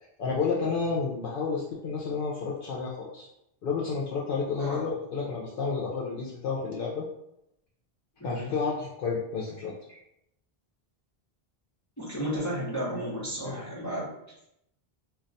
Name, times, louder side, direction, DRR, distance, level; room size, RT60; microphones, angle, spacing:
voice 1, 0.2-3.3 3.6-7.0 8.2-9.7 13.4-13.6, left 5 dB, 65° left, -5 dB, 0.7 m, -30 dB
voice 2, 8.2-8.5 12.0-14.1, equal, 20° left, -9 dB, 0.8 m, -33 dB
2.3 x 2.2 x 3.9 m, 0.81 s
omnidirectional pair, 1.0 m